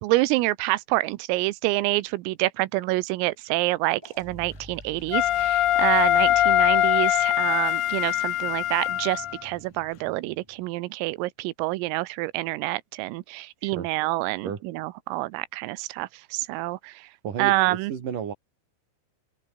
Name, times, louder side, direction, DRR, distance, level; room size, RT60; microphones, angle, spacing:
voice 1, 0.0-17.1 17.4-17.9, right 20 dB, 85° right, 3.6 m, -27 dB
sound 1, 4.0-10.6, right 1 dB, 5° right, 5.5 m, -48 dB
Wind instrument woodwind instrument, 5.1-9.4, left 13 dB, 75° left, 2.1 m, -22 dB
voice 2, 17.2-18.3, right 7 dB, 45° right, 4.2 m, -32 dB
omnidirectional pair, 5.9 m